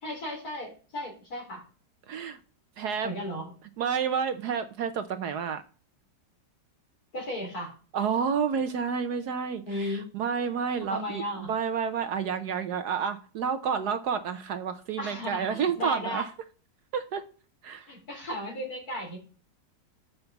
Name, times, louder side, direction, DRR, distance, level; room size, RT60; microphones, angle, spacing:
voice 1, 0.0-1.6 3.0-3.5 7.1-7.7 9.6-10.1 10.9-11.5 15.0-16.2 17.9-19.2, left 1 dB, 55° left, 4.1 m, -35 dB
voice 2, 2.1-2.4 2.8-3.1 3.8-5.6 7.9-11.2 11.5-16.2 16.9-17.2 17.6-17.9, right 6 dB, 70° right, 1.2 m, -30 dB
6.6 x 5.8 x 7.0 m
omnidirectional pair, 1.9 m